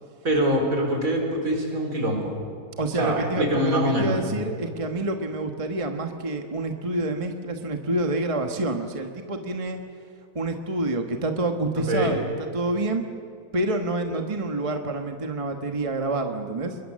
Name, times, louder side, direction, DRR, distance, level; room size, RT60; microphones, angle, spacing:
voice 1, 0.2-2.3 2.9-4.1 11.9-12.2, equal, 60° right, 1 dB, 5.3 m, -24 dB
voice 2, 2.8-9.8 10.3-13.0 13.5-16.8, right 2 dB, 25° right, 5 dB, 1.3 m, -27 dB
27.5 x 22.0 x 7.6 m, 2.5 s
omnidirectional pair, 1.6 m